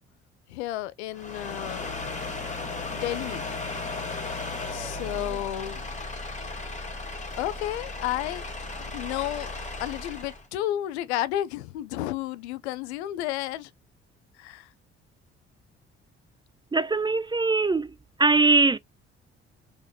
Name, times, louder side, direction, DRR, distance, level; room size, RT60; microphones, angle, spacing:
voice 1, 0.5-1.9 2.9-3.5 4.7-5.9 7.4-8.4 8.8-9.5 9.8-13.7 14.4-14.7, left 13 dB, 80° left, 0.5 m, -32 dB
sound 1, 1.1-10.5, left 3 dB, 20° left, 1.8 m, -35 dB
voice 2, 16.7-17.9 18.2-18.8, right 3 dB, 15° right, 0.4 m, -21 dB
4.7 x 3.2 x 2.7 m
hypercardioid pair, 45°, 33 cm